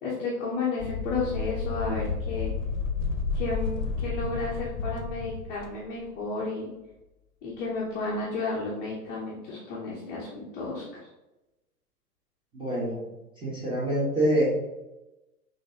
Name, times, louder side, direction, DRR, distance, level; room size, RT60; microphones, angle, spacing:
voice 1, 0.0-2.5 3.3-6.7 7.4-10.8, left 3 dB, 20° left, -5 dB, 0.8 m, -32 dB
sound 1, 0.8-5.7, left 4 dB, 55° left, 0.9 m, -31 dB
voice 2, 12.5-13.0 13.4-14.6, right 1 dB, 10° right, -7 dB, 1.5 m, -26 dB
6.0 x 2.8 x 2.9 m, 0.99 s
figure-of-eight pair, 110°, 48 cm